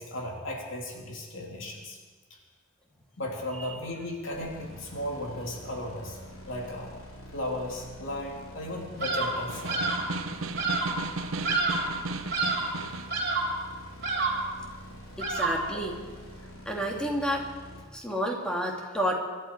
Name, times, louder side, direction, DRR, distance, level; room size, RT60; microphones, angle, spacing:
voice 1, 0.0-2.0 2.3-2.4 3.2-6.2 6.5-6.9 7.3-9.9 12.6-12.7 15.7-15.8, left 1 dB, 65° left, -1 dB, 3.0 m, -36 dB
sound 1, 4.3-17.8, equal, 85° left, 3.6 m, -46 dB
Bird vocalization bird call bird song, 9.0-9.4 9.7-10.1 10.6-11.0 11.4-12.0 12.3-12.8 13.1-13.6 14.0-14.5 15.2-15.7, right 3 dB, 50° right, 3.0 m, -28 dB
Snare drum, 9.3-13.2, right 3 dB, 75° right, 0.9 m, -35 dB
voice 2, 15.2-16.0 16.7-17.5 17.9-19.1, equal, 5° left, -1 dB, 2.4 m, -30 dB
25.5 x 11.5 x 4.6 m, 1.4 s
head